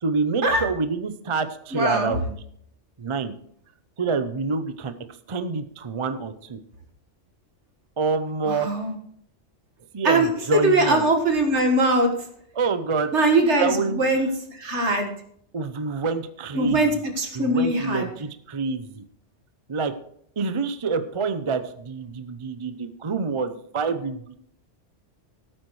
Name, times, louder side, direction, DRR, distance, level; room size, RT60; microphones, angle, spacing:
voice 1, 0.0-2.4 3.0-3.4 4.0-4.9 5.3-6.6 8.0-8.7 9.9-11.1 12.5-13.1 13.6-14.3 15.5-17.0 17.3-19.0 19.7-19.9 20.4-24.3, right 4 dB, 35° right, 10 dB, 0.5 m, -27 dB
voice 2, 1.7-2.2 8.5-8.9 10.0-12.1 13.1-14.3 14.6-15.1 16.6-16.9 17.2-18.0, right 2 dB, 65° right, 4 dB, 2.0 m, -21 dB
16.5 x 8.8 x 3.2 m, 0.66 s
omnidirectional pair, 1.3 m